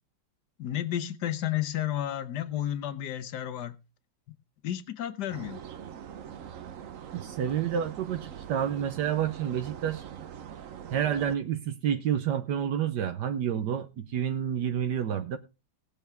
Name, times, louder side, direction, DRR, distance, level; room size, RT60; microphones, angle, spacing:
voice 1, 0.6-3.8 4.6-5.6, left 12 dB, 70° left, 1.5 m, -32 dB
sound 1, 5.3-11.4, right 9 dB, 55° right, 1.1 m, -43 dB
voice 2, 7.1-10.0 10.9-15.4, right 9 dB, 75° right, 1.4 m, -29 dB
19.0 x 7.1 x 3.5 m
omnidirectional pair, 1.9 m